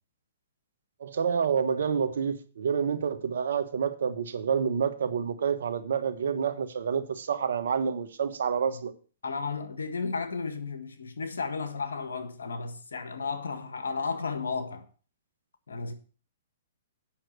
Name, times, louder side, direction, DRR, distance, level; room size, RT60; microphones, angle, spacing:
voice 1, 1.0-8.9, right 7 dB, 75° right, 1.2 m, -28 dB
voice 2, 9.2-14.8 15.7-15.9, left 4 dB, 85° left, 1.7 m, -33 dB
8.6 x 6.0 x 6.8 m
hypercardioid pair, 125°, 0 cm